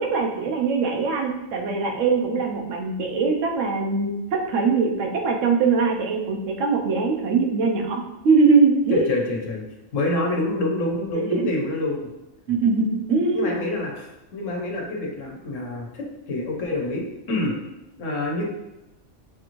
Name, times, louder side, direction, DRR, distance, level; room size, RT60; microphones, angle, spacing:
voice 1, 0.0-9.0 11.1-11.5 12.5-13.5, right 4 dB, 85° right, 2 dB, 1.1 m, -22 dB
voice 2, 8.9-9.6 9.9-12.1 13.3-17.5 17.9-18.5, left 2 dB, 85° left, -1 dB, 1.3 m, -27 dB
6.7 x 2.6 x 3.0 m, 0.96 s
omnidirectional pair, 1.3 m